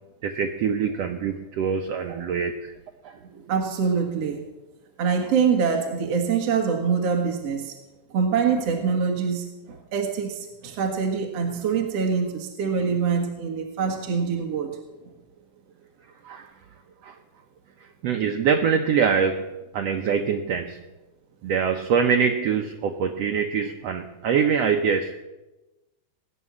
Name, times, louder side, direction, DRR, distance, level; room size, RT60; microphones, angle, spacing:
voice 1, 0.2-2.7 3.0-3.2 16.2-16.5 17.0-17.2 17.8-19.4 19.7-20.8 21.4-25.1, right 6 dB, 75° right, 5 dB, 1.5 m, -24 dB
voice 2, 3.3-4.4 5.0-7.8 8.1-14.7, right 6 dB, 55° right, 2 dB, 2.3 m, -24 dB
20.0 x 6.9 x 9.7 m, 1.1 s
omnidirectional pair, 4.1 m